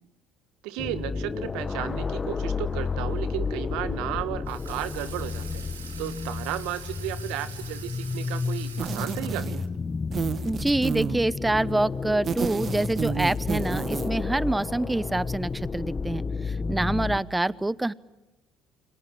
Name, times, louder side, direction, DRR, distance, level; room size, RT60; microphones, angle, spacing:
voice 1, 0.6-5.6 6.0-9.6, right 13 dB, 70° right, 13 dB, 1.6 m, -34 dB
sound 1, 0.8-17.2, left 4 dB, 30° left, 1.4 m, -32 dB
Water tap faucet / Sink (filling or washing), 4.5-9.7, right 6 dB, 90° right, 2.5 m, -44 dB
sound 2, 8.8-9.8 10.1-11.3 12.1-14.2, right 7 dB, 45° right, 1.4 m, -31 dB
voice 2, 10.4-17.9, right 2 dB, 15° right, 21 dB, 0.9 m, -26 dB
29.0 x 24.0 x 7.8 m, 1.0 s
hypercardioid pair, 55°, 0 cm